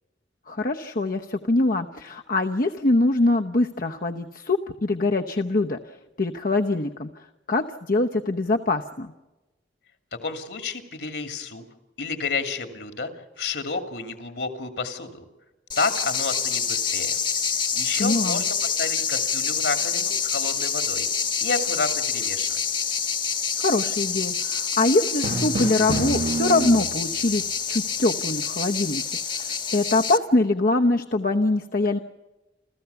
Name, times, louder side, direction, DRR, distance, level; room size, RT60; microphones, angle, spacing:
voice 1, 0.5-5.8 6.2-9.1 18.0-18.4 23.6-32.0, left 2 dB, 50° left, 4 dB, 0.9 m, -23 dB
voice 2, 10.1-11.6 12.0-15.2 15.8-17.2 17.7-21.1 21.4-22.6, left 4 dB, 70° left, 7 dB, 2.7 m, -30 dB
sound 1, 15.7-30.2, left 6 dB, 25° left, 1.2 m, -27 dB
Drum, 25.2-27.2, right 2 dB, 70° right, 1.6 m, -28 dB
29.5 x 14.5 x 7.0 m, 1.1 s
head